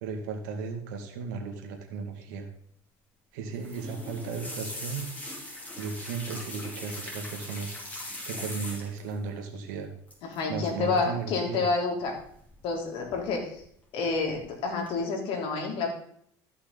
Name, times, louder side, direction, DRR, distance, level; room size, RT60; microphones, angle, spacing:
voice 1, 0.0-2.5 3.3-5.1 5.8-7.7 8.2-9.9 10.5-11.7, right 5 dB, 85° right, 4 dB, 2.0 m, -35 dB
sound 1, 3.5-9.1 10.1-10.4 10.7-11.0 12.2-12.7 13.1-13.6 14.1-14.5 14.9-15.0, left 1 dB, 15° left, 3.9 m, -40 dB
voice 2, 10.2-12.2 12.6-13.6 13.9-15.9, left 4 dB, 65° left, 2 dB, 3.0 m, -29 dB
14.0 x 5.8 x 4.0 m, 0.67 s
supercardioid pair, 95°, 10 cm